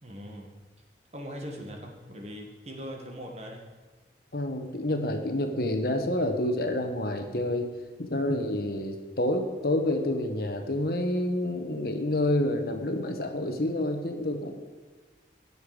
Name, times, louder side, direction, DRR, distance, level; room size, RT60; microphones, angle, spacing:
voice 1, 0.0-0.5 1.1-3.6, equal, 35° right, 1 dB, 1.7 m, -40 dB
voice 2, 4.3-7.7 8.0-14.5, left 1 dB, 55° left, 5 dB, 1.2 m, -28 dB
16.5 x 6.9 x 5.0 m, 1.4 s
head